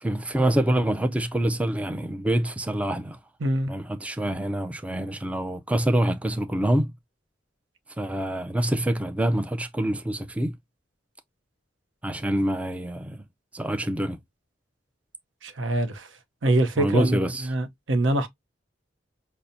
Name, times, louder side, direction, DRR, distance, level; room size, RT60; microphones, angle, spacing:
voice 1, 0.0-3.2 3.7-6.9 8.0-10.6 12.0-13.2 13.5-14.2 16.8-17.5, right 1 dB, 5° right, 0.3 m, -26 dB
voice 2, 3.4-3.7 15.4-16.1 16.4-18.3, right 1 dB, 85° right, 0.7 m, -24 dB
5.5 x 2.0 x 2.5 m
head